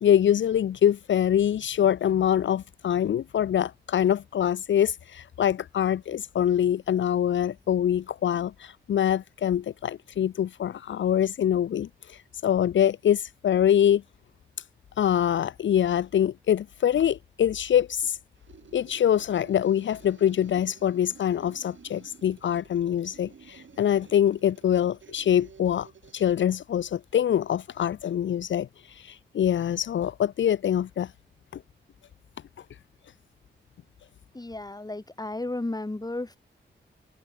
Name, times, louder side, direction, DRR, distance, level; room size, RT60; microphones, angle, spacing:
voice 1, 0.0-14.0 15.0-18.2 18.7-25.9 26.1-31.1 31.5-31.6, left 10 dB, 75° left, 0.5 m, -24 dB
sound 1, 18.4-26.6, right 6 dB, 75° right, 4.8 m, -53 dB
voice 2, 34.3-36.4, left 2 dB, 20° left, 2.6 m, -33 dB
open air
cardioid pair, 65°, 20 cm